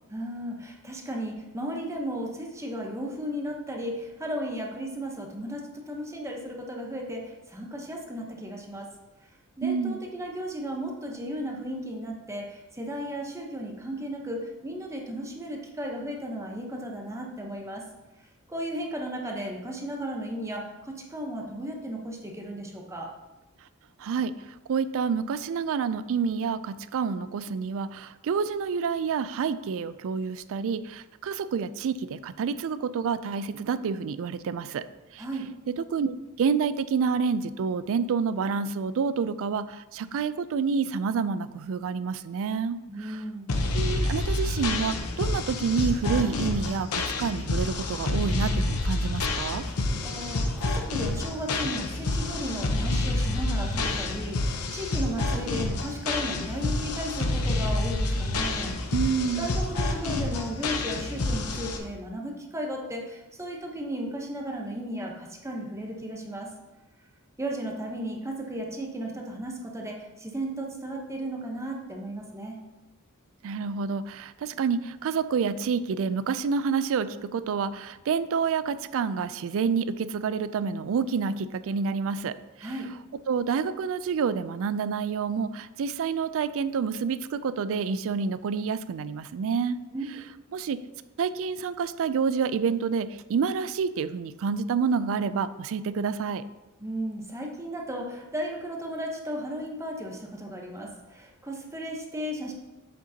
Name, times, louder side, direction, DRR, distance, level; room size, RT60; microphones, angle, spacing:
voice 1, 0.1-8.9 9.6-17.8 18.5-23.1 35.2-35.5 42.9-43.7 49.6-58.7 59.3-66.5 67.4-72.6 82.6-82.9 89.9-90.0 96.8-102.5, equal, 15° right, 0 dB, 0.9 m, -35 dB
voice 2, 9.6-10.0 24.0-34.8 35.1-35.2 35.7-43.2 43.7-49.6 58.9-59.5 73.4-82.7 83.3-89.8 90.5-90.8 91.2-96.4, right 5 dB, 65° right, 14 dB, 0.4 m, -28 dB
sound 1, 43.5-61.8, left 2 dB, 90° left, 0.9 m, -28 dB
7.8 x 6.4 x 2.8 m, 1.0 s
head